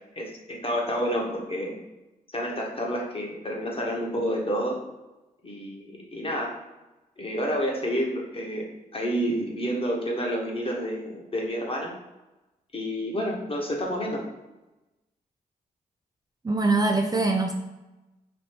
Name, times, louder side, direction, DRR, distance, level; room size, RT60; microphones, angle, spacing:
voice 1, 0.1-1.8 2.3-4.7 5.4-6.5 7.2-8.6 8.9-11.9 12.7-14.2, equal, 35° left, -1 dB, 1.3 m, -29 dB
voice 2, 16.4-17.5, right 3 dB, 25° right, 2 dB, 0.5 m, -23 dB
3.3 x 2.7 x 4.4 m, 1.0 s
supercardioid pair, 55°, 17 cm